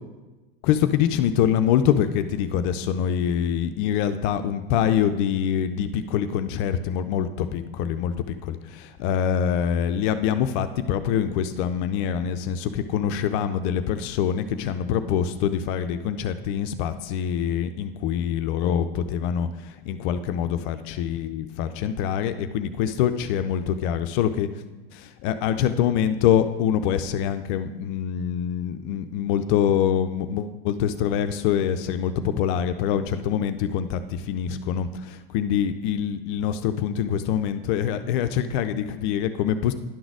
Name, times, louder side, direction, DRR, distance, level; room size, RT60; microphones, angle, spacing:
voice 1, 0.6-24.5 24.9-39.7, left 9 dB, 50° left, 10 dB, 0.5 m, -25 dB
10.5 x 3.9 x 6.2 m, 1.2 s
hypercardioid pair, 100°, 32 cm